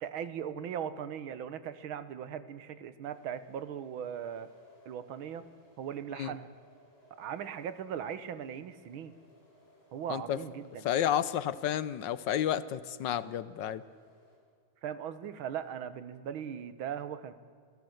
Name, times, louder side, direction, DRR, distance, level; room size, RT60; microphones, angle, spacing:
voice 1, 0.0-4.5 4.9-5.4 5.8-6.5 7.2-9.1 9.9-10.9 14.8-17.3, right 8 dB, 80° right, 13 dB, 1.9 m, -39 dB
sound 1, 3.0-14.4, left 1 dB, 35° left, 8.4 m, -63 dB
voice 2, 10.8-13.8, left 10 dB, 70° left, 16 dB, 1.3 m, -31 dB
26.5 x 16.5 x 7.9 m, 2.1 s
omnidirectional pair, 2.2 m